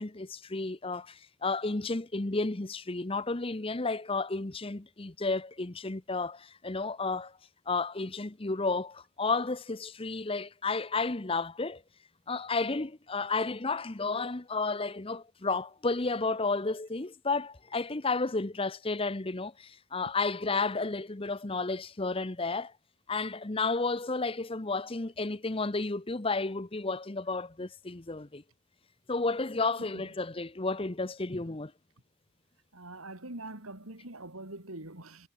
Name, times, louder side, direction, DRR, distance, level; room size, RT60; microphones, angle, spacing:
voice 1, 0.0-7.3 7.7-11.8 12.3-22.7 23.1-28.4 29.1-31.7, left 3 dB, 25° left, 0.9 m, -32 dB
voice 2, 32.7-35.3, right 2 dB, 85° right, 5.1 m, -43 dB
head